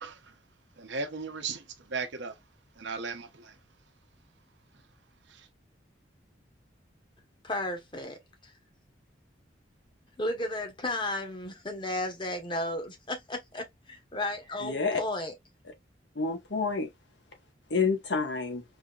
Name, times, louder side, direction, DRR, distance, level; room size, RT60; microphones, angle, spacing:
voice 1, 0.0-0.3 0.8-2.3 2.8-3.6 5.3-5.5, right 4 dB, 75° right, 0.8 m, -37 dB
voice 2, 7.4-8.2 10.2-15.3, left 1 dB, 25° left, 1.0 m, -33 dB
voice 3, 14.6-15.0 16.1-16.9 17.7-18.6, left 4 dB, 70° left, 1.2 m, -28 dB
4.8 x 2.8 x 2.4 m
head